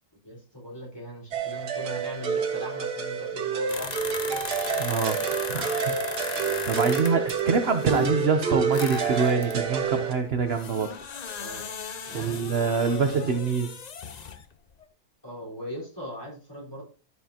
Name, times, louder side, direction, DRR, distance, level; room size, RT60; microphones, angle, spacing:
voice 1, 0.2-4.5 7.4-7.5 11.4-11.7 12.1-12.4 12.8-13.5 15.2-16.8, equal, 15° left, -3 dB, 4.4 m, -39 dB
sound 1, 1.3-10.1, right 6 dB, 90° right, 2.0 m, -28 dB
sound 2, 3.7-8.1 8.7-14.5 14.8-14.9, left 6 dB, 60° left, 0.4 m, -37 dB
voice 2, 4.8-5.2 5.5-5.9 6.6-10.9 12.1-13.7, right 5 dB, 45° right, 6 dB, 1.0 m, -25 dB
13.0 x 8.3 x 2.9 m, 0.37 s
omnidirectional pair, 1.7 m